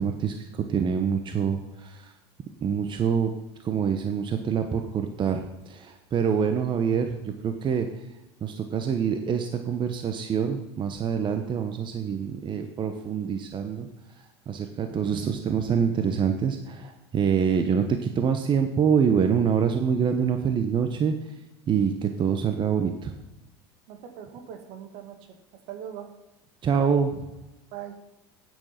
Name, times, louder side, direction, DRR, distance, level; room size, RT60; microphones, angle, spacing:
voice 1, 0.0-2.1 2.6-3.3 3.6-7.9 8.4-13.9 14.5-21.1 21.7-23.1 26.6-27.3, right 7 dB, 35° right, 6 dB, 1.1 m, -26 dB
voice 2, 23.9-25.2 25.7-26.1 27.7-28.0, right 9 dB, 60° right, 6 dB, 2.0 m, -40 dB
9.2 x 8.6 x 5.9 m, 0.98 s
hypercardioid pair, 85°, 14 cm